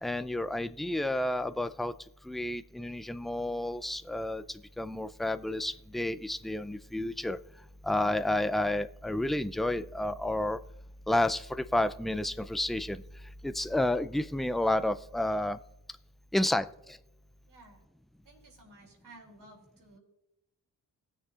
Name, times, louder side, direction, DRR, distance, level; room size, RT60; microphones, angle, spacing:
voice 1, 0.0-1.9 2.3-4.4 4.8-7.4 7.8-10.6 11.1-13.0 13.4-15.6 16.3-16.7, left 1 dB, ahead, 12 dB, 0.4 m, -30 dB
voice 2, 17.5-17.8 18.2-20.0, right 2 dB, 70° right, 0 dB, 3.1 m, -55 dB
18.5 x 6.7 x 2.5 m, 0.89 s
cardioid pair, 50°, 41 cm